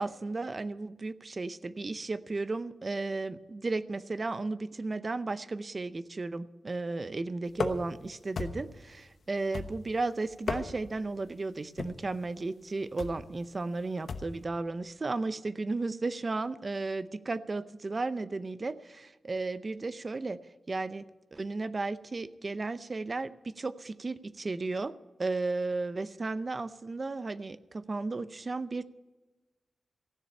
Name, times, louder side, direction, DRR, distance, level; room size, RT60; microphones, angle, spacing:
voice 1, 0.0-20.4 20.7-28.8, right 3 dB, 35° right, 14 dB, 0.6 m, -34 dB
sound 1, 7.5-8.0 8.4-8.8 9.5-10.0 10.3-11.0 11.8-12.1 13.0-13.3 14.1-14.4, left 4 dB, 60° left, 1.0 m, -35 dB
15.5 x 7.1 x 10.0 m, 1.2 s
wide cardioid pair, 120°, 0 cm